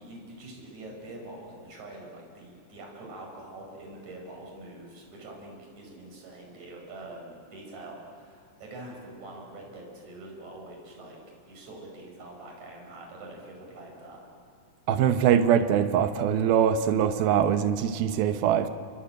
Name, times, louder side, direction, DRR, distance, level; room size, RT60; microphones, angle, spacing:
voice 1, 0.0-11.2 11.5-14.2, right 2 dB, 50° right, 7.0 m, -44 dB
voice 2, 14.9-18.7, right 9 dB, 90° right, 3.0 m, -23 dB
29.0 x 22.0 x 9.0 m
omnidirectional pair, 4.2 m